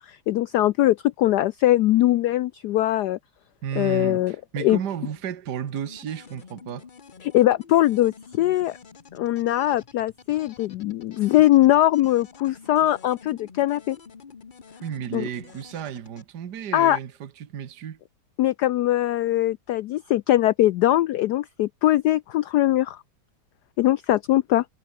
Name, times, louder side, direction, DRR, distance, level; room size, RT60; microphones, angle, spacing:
voice 1, 0.0-3.2 3.8-4.8 7.2-8.8 9.1-14.0 15.1-15.3 16.7-17.0 18.4-23.0 23.8-24.6, left 14 dB, 80° left, 0.9 m, -21 dB
voice 2, 3.6-6.9 14.8-18.0, right 9 dB, 55° right, 1.8 m, -33 dB
sound 1, 5.7-16.2, left 5 dB, 35° left, 0.8 m, -48 dB
omnidirectional pair, 2.3 m